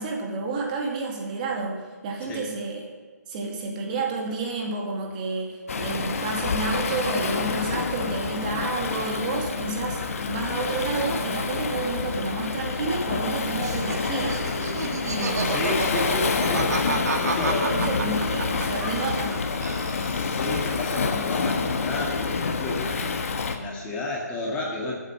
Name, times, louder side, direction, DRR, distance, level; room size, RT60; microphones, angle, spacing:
voice 1, 0.0-2.9 3.3-14.4 15.0-15.7 17.7-19.4, right 3 dB, 25° right, 0 dB, 2.1 m, -30 dB
Waves surf, 5.7-23.6, left 5 dB, 50° left, 1.4 m, -28 dB
Laughter, 13.6-19.4 19.6-20.4, right 3 dB, 60° right, 2.1 m, -30 dB
voice 2, 15.2-17.9 20.0-23.1 23.5-25.0, left 2 dB, 15° left, -3 dB, 1.9 m, -32 dB
13.0 x 8.3 x 6.7 m, 1.5 s
figure-of-eight pair, 150°, 10 cm